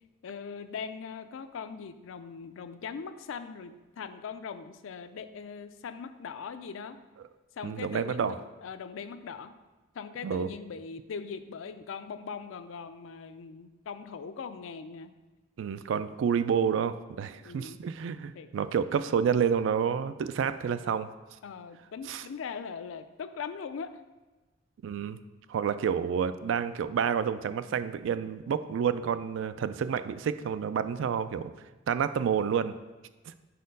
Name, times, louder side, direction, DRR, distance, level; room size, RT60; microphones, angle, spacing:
voice 1, 0.2-7.0 7.6-9.5 9.9-15.1 17.4-17.8 18.3-18.5 21.4-23.9, left 6 dB, 80° left, 10 dB, 0.4 m, -40 dB
voice 2, 7.6-8.4 10.2-10.5 15.6-21.1 22.1-22.2 24.8-25.2 25.5-31.5 31.9-32.7 33.3-33.4, right 7 dB, 70° right, 12 dB, 0.3 m, -29 dB
4.6 x 4.2 x 5.2 m, 1.2 s
head